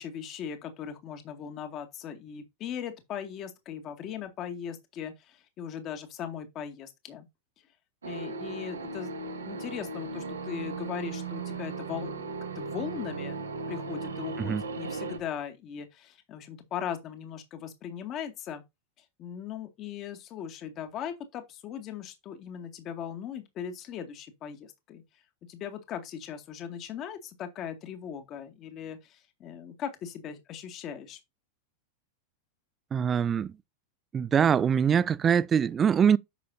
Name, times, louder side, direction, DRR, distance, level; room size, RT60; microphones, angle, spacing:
voice 1, 0.0-7.3 8.0-9.1 9.4-13.4 13.7-18.6 19.2-25.0 25.5-31.2, left 8 dB, 35° left, 2.1 m, -39 dB
sound 1, 8.0-15.2, right 4 dB, 75° right, 1.9 m, -37 dB
voice 2, 32.9-33.5 34.1-36.2, right 7 dB, 20° right, 0.4 m, -23 dB
10.0 x 6.7 x 2.7 m
figure-of-eight pair, 90°, 0 cm